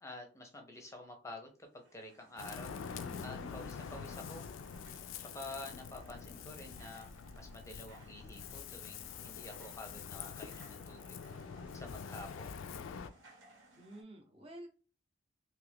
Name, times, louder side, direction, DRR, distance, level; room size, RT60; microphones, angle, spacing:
voice 1, 0.0-2.8 3.2-4.5 4.8-11.2 11.7-12.6, left 2 dB, 15° left, 3 dB, 0.6 m, -49 dB
sound 1, 1.6-14.0, right 2 dB, 75° right, 1.1 m, -62 dB
Ocean, 2.4-13.1, left 6 dB, 80° left, 0.3 m, -46 dB
voice 2, 3.1-3.6 13.8-14.7, right 1 dB, 30° right, 1 dB, 0.8 m, -51 dB
2.8 x 2.4 x 3.4 m, 0.36 s
head